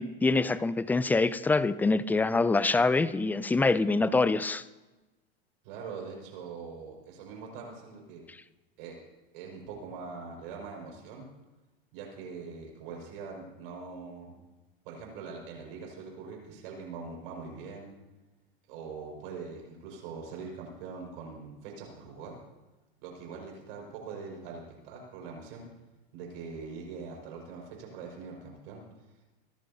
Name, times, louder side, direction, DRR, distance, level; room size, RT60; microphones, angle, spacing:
voice 1, 0.0-4.6, left 3 dB, 5° left, 0.4 m, -25 dB
voice 2, 5.6-8.2 8.8-9.0 9.3-11.3 11.9-14.3 14.8-17.9 18.7-22.4 23.0-25.6 26.1-28.8, right 5 dB, 70° right, 5.6 m, -42 dB
25.0 x 11.0 x 2.8 m
hypercardioid pair, 105°, 29 cm